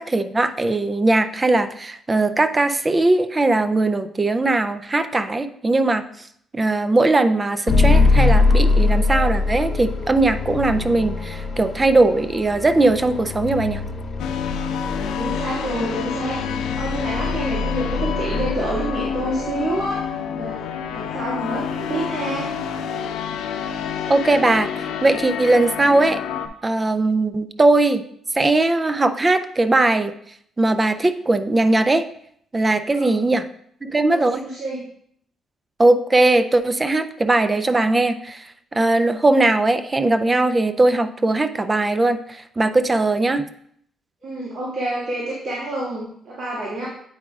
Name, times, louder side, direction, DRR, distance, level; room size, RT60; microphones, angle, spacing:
voice 1, 0.0-6.0 6.5-13.8 24.1-26.2 26.6-28.0 28.3-30.1 30.6-32.0 32.5-33.4 33.8-34.4 35.8-38.4 38.7-43.4, right 2 dB, 25° right, 10 dB, 0.4 m, -19 dB
sound 1, 7.7-19.8, left 3 dB, 50° left, 1.1 m, -23 dB
sound 2, 14.2-26.5, left 7 dB, 85° left, 0.5 m, -28 dB
voice 2, 14.8-22.5 32.9-33.3 34.1-34.8 44.2-46.9, right 1 dB, 55° right, -6 dB, 1.9 m, -28 dB
8.6 x 5.1 x 2.4 m, 0.67 s
cardioid pair, 90°, 0 cm